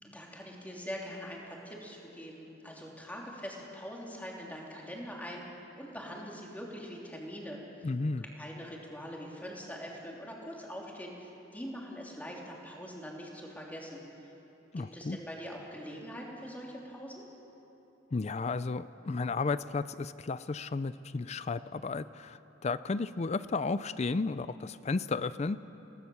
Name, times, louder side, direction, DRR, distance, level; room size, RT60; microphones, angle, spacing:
voice 1, 0.0-5.4 5.7-7.6 8.2-14.0 14.8-17.2, equal, 10° left, -2 dB, 3.2 m, -43 dB
voice 2, 7.8-8.2 14.7-15.2 18.1-25.6, left 3 dB, 35° left, 15 dB, 0.4 m, -33 dB
27.5 x 17.5 x 7.2 m, 3.0 s
head